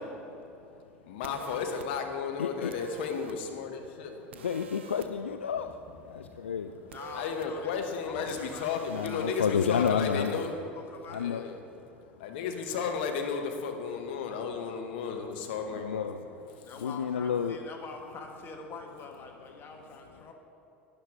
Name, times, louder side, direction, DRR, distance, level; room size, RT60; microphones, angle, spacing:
voice 1, 1.0-4.2 6.1-6.3 7.1-10.5 11.2-11.6 12.2-16.7, left 6 dB, 60° left, 4 dB, 1.1 m, -34 dB
sound 1, 1.2-1.9 2.7-3.4 4.3-5.1 6.9-7.5 8.3-9.9, right 7 dB, 65° right, 0.6 m, -47 dB
voice 2, 2.4-2.7 4.3-6.8 8.9-10.4 11.1-11.4 15.7-16.3 16.8-17.6, left 7 dB, 75° left, 8 dB, 0.3 m, -30 dB
voice 3, 6.8-7.8 8.0-11.3 16.6-20.3, left 4 dB, 35° left, 2 dB, 1.5 m, -45 dB
11.5 x 10.5 x 3.6 m, 2.7 s
figure-of-eight pair, 75°, 6 cm